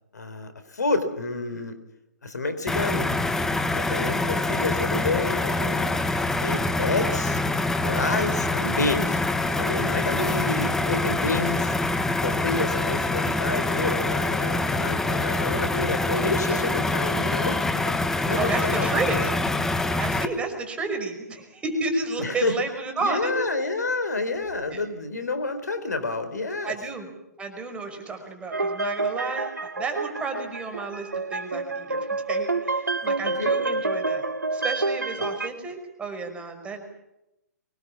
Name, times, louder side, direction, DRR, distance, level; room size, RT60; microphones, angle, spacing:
voice 1, 0.1-1.8 2.2-5.9 6.4-7.4 7.8-9.2 9.6-11.7 12.2-17.9 18.3-19.3 22.2-22.5 23.0-26.8 33.2-33.6 35.2-35.3, left 3 dB, 75° left, 10 dB, 4.3 m, -29 dB
sound 1, 2.7-20.3, left 2 dB, 5° left, 1.4 m, -25 dB
voice 2, 18.3-19.3 19.9-23.5 24.7-24.8 26.6-27.1 27.4-34.2 34.5-36.8, right 3 dB, 10° right, 5 dB, 5.5 m, -31 dB
sound 2, 28.5-35.5, right 3 dB, 90° right, 2.0 m, -28 dB
25.0 x 21.5 x 7.3 m, 0.86 s
figure-of-eight pair, 125°, 9 cm